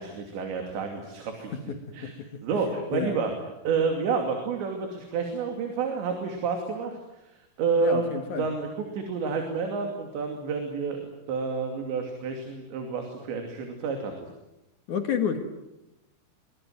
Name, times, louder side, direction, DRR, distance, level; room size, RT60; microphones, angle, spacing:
voice 1, 0.0-2.1 2.4-3.3 3.6-6.9 7.6-8.1 8.4-8.7 8.9-14.1, right 5 dB, 65° right, 4 dB, 4.7 m, -29 dB
voice 2, 1.5-2.4 2.9-3.2 7.8-8.5 14.9-15.4, left 7 dB, 60° left, 6 dB, 2.0 m, -30 dB
23.5 x 23.5 x 9.4 m, 0.92 s
omnidirectional pair, 5.9 m